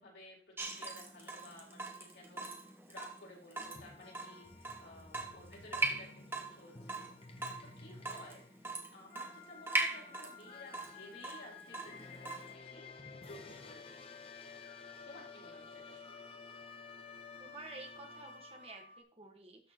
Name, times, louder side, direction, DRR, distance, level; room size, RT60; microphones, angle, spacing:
voice 1, 0.0-8.4 8.9-14.2 15.0-16.3, left 1 dB, 80° left, -3 dB, 4.4 m, -55 dB
Water tap faucet / Drip, 0.6-12.5, right 2 dB, 15° right, 1.1 m, -41 dB
sound 1, 3.6-19.0, left 4 dB, 35° left, 0.9 m, -52 dB
voice 2, 17.4-19.7, right 3 dB, 35° right, 3 dB, 1.5 m, -51 dB
12.5 x 6.3 x 3.0 m, 0.41 s
head